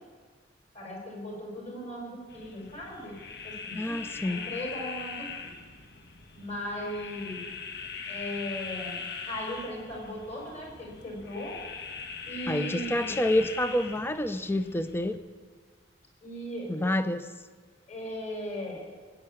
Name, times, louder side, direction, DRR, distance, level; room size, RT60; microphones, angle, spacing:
voice 1, 0.7-5.5 6.3-7.4 8.1-11.6 12.2-13.1 16.2-16.7 17.9-18.8, equal, 40° left, -1 dB, 4.8 m, -38 dB
sound 1, 2.3-15.2, left 5 dB, 65° left, 1.5 m, -41 dB
voice 2, 3.7-4.4 12.5-15.2 16.7-17.3, left 1 dB, 10° left, 11 dB, 0.6 m, -28 dB
19.5 x 8.4 x 8.6 m, 1.6 s
head